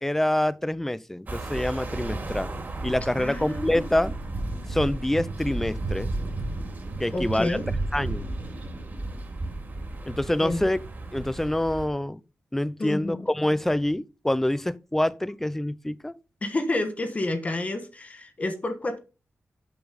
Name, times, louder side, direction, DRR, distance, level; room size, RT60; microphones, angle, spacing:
voice 1, 0.0-2.5 2.8-4.1 4.7-6.1 7.0-7.6 7.9-8.3 10.1-10.8 11.1-12.2 12.5-16.1, left 1 dB, 5° left, 0.4 m, -26 dB
sound 1, 1.3-11.9, right 2 dB, 35° right, 2.1 m, -33 dB
voice 2, 3.1-3.9 7.1-7.7 10.4-10.6 12.8-13.3 16.4-19.0, left 2 dB, 30° left, 1.2 m, -29 dB
8.0 x 7.2 x 4.9 m
wide cardioid pair, 170°, 5 cm